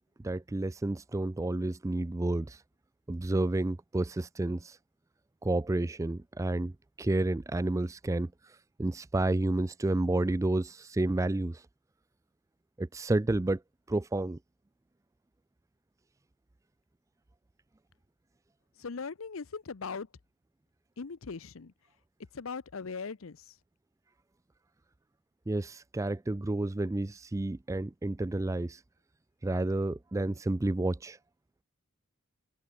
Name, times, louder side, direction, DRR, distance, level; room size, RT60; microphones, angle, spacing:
voice 1, 0.2-2.6 3.1-4.8 5.4-11.7 12.8-13.6 13.9-14.4 25.5-28.8 29.4-31.2, right 2 dB, 15° right, 0.4 m, -30 dB
voice 2, 18.8-20.1 21.0-21.7 22.3-23.6, left 5 dB, 80° left, 0.7 m, -39 dB
head